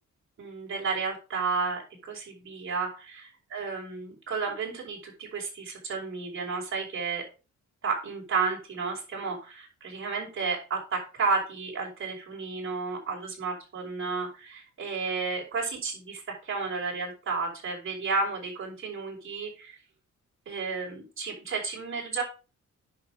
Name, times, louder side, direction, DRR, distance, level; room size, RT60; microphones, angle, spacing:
voice 1, 0.4-3.0 3.5-7.2 7.8-19.8 20.5-22.2, right 4 dB, 40° right, -4 dB, 5.2 m, -32 dB
10.0 x 6.1 x 4.9 m, 0.32 s
wide cardioid pair, 155°, 30 cm